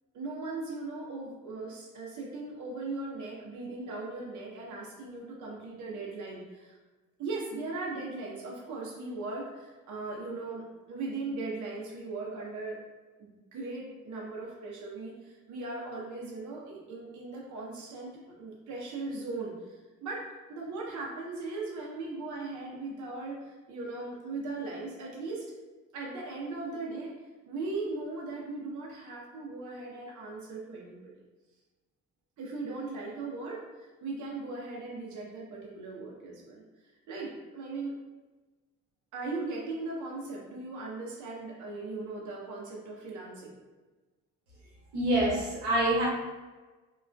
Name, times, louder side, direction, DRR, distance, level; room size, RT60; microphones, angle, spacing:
voice 1, 0.1-6.8 7.2-12.8 13.2-25.5 25.9-27.1 27.5-31.1 32.4-36.6 37.1-37.9 39.1-43.6, right 3 dB, 45° right, -3 dB, 0.7 m, -38 dB
voice 2, 44.9-46.1, right 1 dB, 75° right, -5 dB, 1.0 m, -26 dB
3.0 x 2.4 x 2.2 m, 1.2 s
hypercardioid pair, 45°, 40 cm